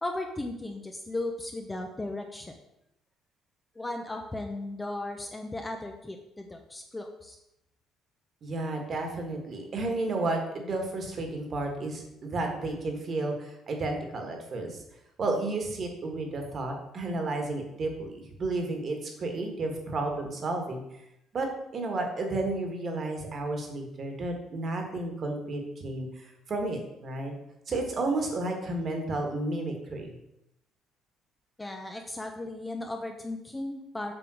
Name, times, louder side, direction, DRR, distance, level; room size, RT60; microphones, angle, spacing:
voice 1, 0.0-2.5 3.8-7.4 31.6-34.1, left 2 dB, 10° left, 3 dB, 0.7 m, -36 dB
voice 2, 8.4-14.8 15.2-20.8 21.3-21.5 21.7-27.3 27.7-30.1, right 2 dB, 35° right, 3 dB, 1.6 m, -32 dB
7.7 x 3.8 x 6.2 m, 0.83 s
cardioid pair, 150°, 0 cm